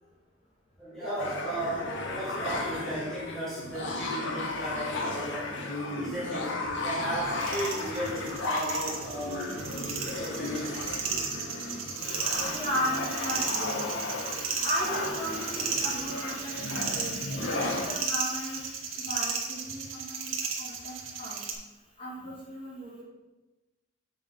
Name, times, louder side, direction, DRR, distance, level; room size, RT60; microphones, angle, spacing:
voice 1, 0.8-5.6 6.0-9.5 10.0-11.0, right 1 dB, ahead, -9 dB, 1.6 m, -36 dB
sound 1, 1.2-17.9, left 2 dB, 65° left, 0.8 m, -34 dB
sound 2, 7.4-21.5, right 5 dB, 80° right, 1.0 m, -34 dB
voice 2, 12.0-20.3 20.6-21.4 22.0-23.0, equal, 25° left, -6 dB, 1.9 m, -36 dB
6.8 x 3.7 x 5.2 m, 1.1 s
head